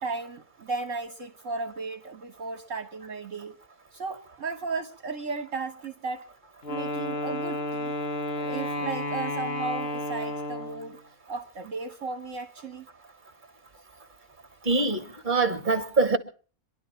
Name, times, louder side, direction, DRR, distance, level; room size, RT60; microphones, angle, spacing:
voice 1, 0.0-3.6 3.9-6.2 6.7-7.9 8.4-11.0 11.3-12.9, right 4 dB, 60° right, 1.7 m, -35 dB
Wind instrument woodwind instrument, 6.6-11.0, left 2 dB, 45° left, 1.7 m, -32 dB
voice 2, 14.7-16.2, right 3 dB, 35° right, 2.5 m, -24 dB
26.0 x 12.0 x 4.5 m
omnidirectional pair, 1.5 m